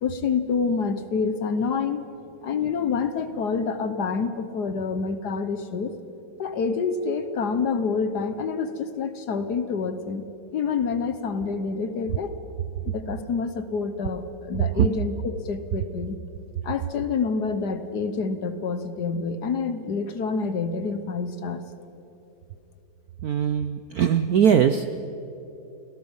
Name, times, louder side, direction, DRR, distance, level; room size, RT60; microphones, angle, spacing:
voice 1, 0.0-2.0 2.4-5.9 6.4-10.3 10.5-12.3 12.9-16.2 16.6-21.6, left 5 dB, 55° left, 10 dB, 1.4 m, -27 dB
voice 2, 23.2-25.0, right 8 dB, 70° right, 10 dB, 0.9 m, -20 dB
29.5 x 17.5 x 5.5 m, 3.0 s
omnidirectional pair, 2.3 m